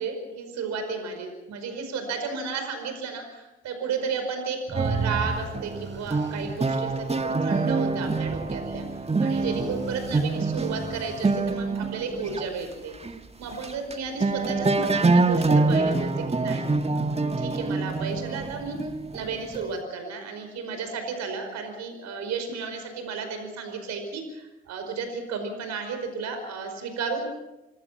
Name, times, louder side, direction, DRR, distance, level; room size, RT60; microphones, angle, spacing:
voice 1, 0.0-8.8 9.2-12.9 13.4-18.8 19.1-27.3, right 5 dB, 60° right, 6 dB, 5.0 m, -33 dB
sound 1, 4.7-12.4 13.0-13.2 13.5-13.9 14.2-19.8, right 3 dB, 20° right, 1.7 m, -26 dB
sound 2, 4.7-6.6 9.4-11.4, right 4 dB, 35° right, 8.0 m, -34 dB
27.5 x 20.5 x 5.8 m, 0.97 s
figure-of-eight pair, 45°, 31 cm